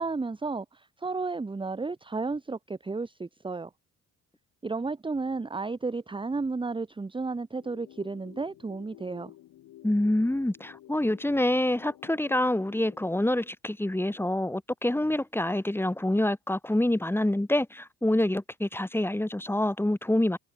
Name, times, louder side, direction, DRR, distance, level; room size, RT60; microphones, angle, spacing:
voice 1, 0.0-3.7 4.6-9.3, right 3 dB, 15° right, 1.1 m, -33 dB
sound 1, 7.5-13.5, left 14 dB, 80° left, 5.1 m, -52 dB
voice 2, 9.8-20.4, left 1 dB, 5° left, 2.9 m, -26 dB
cardioid pair, 90°, 30 cm